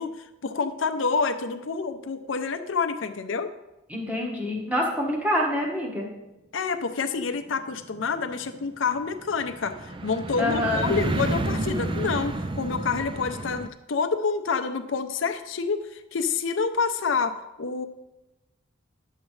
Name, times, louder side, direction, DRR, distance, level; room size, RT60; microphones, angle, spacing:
voice 1, 0.0-3.5 6.5-17.9, left 5 dB, 70° left, 8 dB, 0.6 m, -28 dB
voice 2, 3.9-6.1 10.4-11.0, left 1 dB, 5° right, -2 dB, 1.3 m, -26 dB
sound 1, 7.3-13.7, right 2 dB, 25° right, 0.3 m, -31 dB
10.5 x 7.3 x 3.2 m, 0.96 s
head